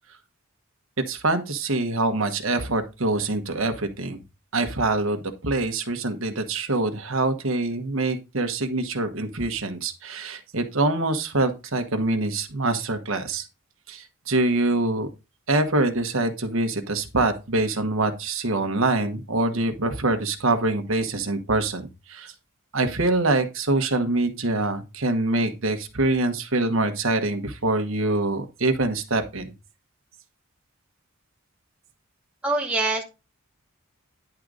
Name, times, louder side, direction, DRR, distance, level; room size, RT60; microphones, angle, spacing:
voice 1, 1.1-4.2 4.5-13.4 13.9-15.1 15.5-21.8 22.1-22.3 22.7-29.5, right 2 dB, 65° right, 7 dB, 1.3 m, -25 dB
voice 2, 32.4-33.0, right 2 dB, 5° right, 0 dB, 0.9 m, -24 dB
10.5 x 3.9 x 4.9 m, 0.27 s
head